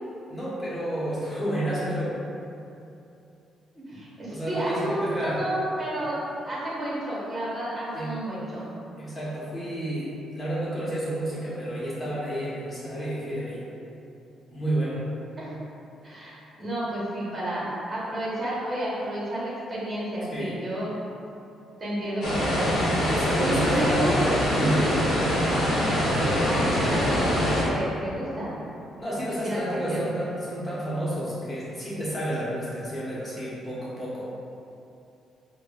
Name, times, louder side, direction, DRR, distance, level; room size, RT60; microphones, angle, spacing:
voice 1, 0.3-2.2 4.3-5.4 7.9-8.1 9.0-13.6 14.5-15.0 20.3-20.6 23.1-24.9 26.1-26.5 29.0-34.3, right 1 dB, 25° left, -9 dB, 1.2 m, -30 dB
voice 2, 3.9-8.7 15.3-15.5 16.0-20.9 21.8-22.8 23.4-24.9 26.4-28.6 29.4-30.0, right 1 dB, 30° right, -7 dB, 1.2 m, -31 dB
sound 1, 22.2-27.6, equal, 90° left, 1.0 m, -24 dB
4.6 x 2.3 x 2.4 m, 2.8 s
cardioid pair, 90°, 0 cm